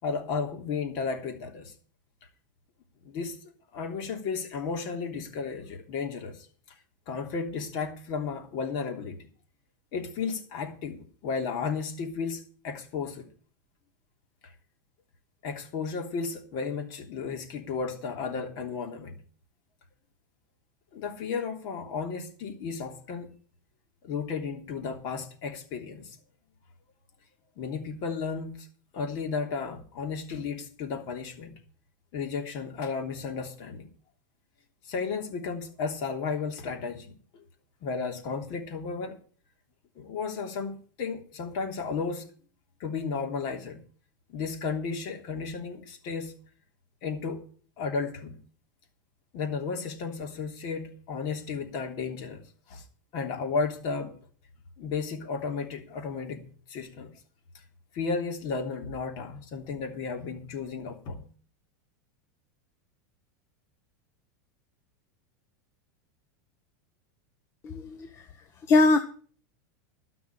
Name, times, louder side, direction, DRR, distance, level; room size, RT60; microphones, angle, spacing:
voice 1, 0.0-1.7 3.0-3.3 3.7-6.4 7.1-9.3 9.9-13.3 15.4-19.2 20.9-23.3 24.0-26.1 27.6-28.7 28.9-31.5 32.1-33.9 34.9-37.1 37.8-39.1 39.9-42.2 42.8-43.8 44.3-46.3 47.0-47.4 47.8-48.3 49.3-52.4 52.7-52.8 53.1-54.2 54.8-57.1 57.9-61.3, left 5 dB, 45° left, 3 dB, 3.2 m, -33 dB
voice 2, 67.6-68.2 68.7-69.0, left 3 dB, 30° left, 7 dB, 1.0 m, -22 dB
13.0 x 6.1 x 8.8 m, 0.44 s
supercardioid pair, 150°, 10 cm